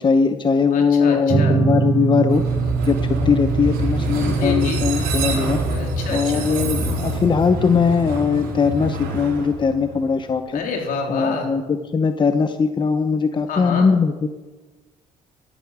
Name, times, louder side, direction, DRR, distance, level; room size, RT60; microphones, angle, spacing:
voice 1, 0.0-2.4 2.8-5.6 6.1-10.6 11.1-14.3, left 5 dB, 30° left, 9 dB, 0.9 m, -20 dB
voice 2, 0.7-1.6 4.2-4.9 5.7-6.5 10.5-11.5 13.5-13.9, left 4 dB, 70° left, 2 dB, 3.8 m, -28 dB
sound 1, 1.3-9.0, right 5 dB, 25° right, 1.1 m, -25 dB
Train, 2.3-10.3, right 1 dB, 80° right, 4.4 m, -26 dB
13.5 x 11.5 x 7.3 m, 1.2 s
supercardioid pair, 75°, 15 cm